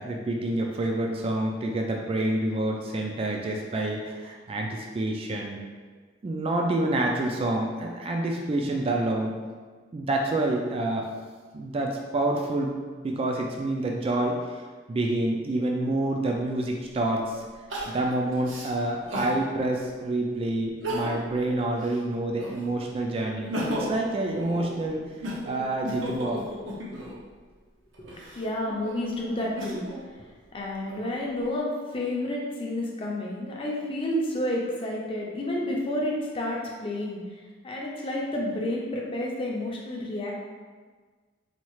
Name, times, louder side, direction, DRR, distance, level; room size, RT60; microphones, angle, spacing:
voice 1, 0.0-5.6 6.2-9.4 9.9-11.1 11.5-14.4 14.9-17.4 17.9-25.0 25.5-26.5, right 2 dB, 30° right, 1 dB, 0.3 m, -28 dB
Crying sobbing, 16.3-16.4 17.7-19.4 19.9-20.0 20.7-21.4 21.7-22.8 23.2-27.2 27.9-30.0 30.6-31.4, equal, 80° right, 0.7 m, -35 dB
voice 2, 28.0-29.8 30.5-37.2 37.6-40.3, left 1 dB, 30° left, -2 dB, 0.6 m, -30 dB
4.2 x 2.3 x 3.0 m, 1.5 s
head